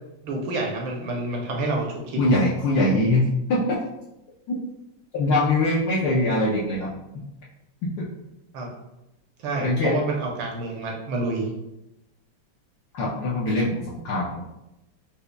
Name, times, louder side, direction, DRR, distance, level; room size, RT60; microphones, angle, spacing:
voice 1, 0.2-2.2 8.5-8.7 9.4-11.5, right 2 dB, 75° right, 0 dB, 1.3 m, -28 dB
voice 2, 2.2-3.6 4.5-4.6 5.1-6.9 7.8-8.1 9.6-10.0 12.9-14.4, left 2 dB, 75° left, -5 dB, 0.9 m, -22 dB
5.0 x 2.2 x 2.2 m, 0.90 s
omnidirectional pair, 2.2 m